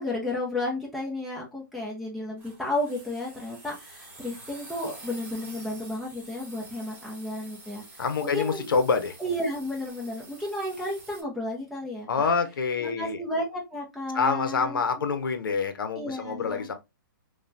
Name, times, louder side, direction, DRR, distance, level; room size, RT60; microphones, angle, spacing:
voice 1, 0.0-7.8 8.3-8.7 9.2-12.1 12.8-14.8 15.9-16.7, left 1 dB, ahead, 0.5 m, -32 dB
sound 1, 2.4-11.2, right 2 dB, 15° right, 1.1 m, -48 dB
voice 2, 8.0-9.2 12.1-13.2 14.1-16.7, left 5 dB, 80° left, 0.6 m, -26 dB
3.1 x 2.2 x 2.6 m
hypercardioid pair, 165°, 11 cm